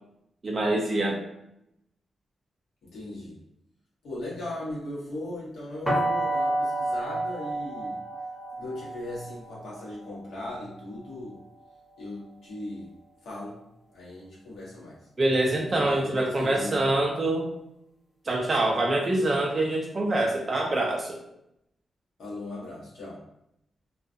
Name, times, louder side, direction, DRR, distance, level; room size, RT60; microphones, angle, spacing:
voice 1, 0.4-1.2 15.2-17.5 18.3-21.2, right 2 dB, 30° right, -1 dB, 0.3 m, -25 dB
voice 2, 2.9-3.4 4.0-8.0 8.6-11.4 12.0-12.9 13.2-13.6 13.9-15.0 15.7-17.0 22.2-23.2, left 1 dB, 85° left, -6 dB, 1.0 m, -38 dB
sound 1, 5.9-11.7, right 1 dB, 5° left, 0.9 m, -31 dB
2.3 x 2.3 x 2.5 m, 0.80 s
wide cardioid pair, 165°, 0 cm